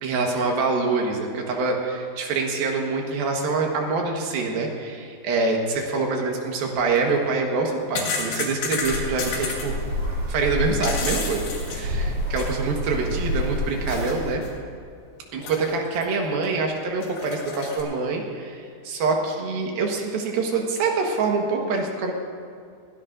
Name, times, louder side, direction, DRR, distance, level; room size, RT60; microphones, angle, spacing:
voice 1, 0.0-9.7 10.3-14.4 15.3-22.1, right 4 dB, 65° right, 1 dB, 2.7 m, -25 dB
sound 1, 6.8-7.0 7.6-9.7 10.5-12.6 13.0-13.1 13.9-14.2 14.4-14.5 15.4-16.0 16.4-16.5 17.0-17.8, left 4 dB, 75° left, 4.8 m, -31 dB
sound 2, 8.8-14.3, equal, 45° right, 2.5 m, -28 dB
21.5 x 17.0 x 2.6 m, 2.3 s
omnidirectional pair, 5.4 m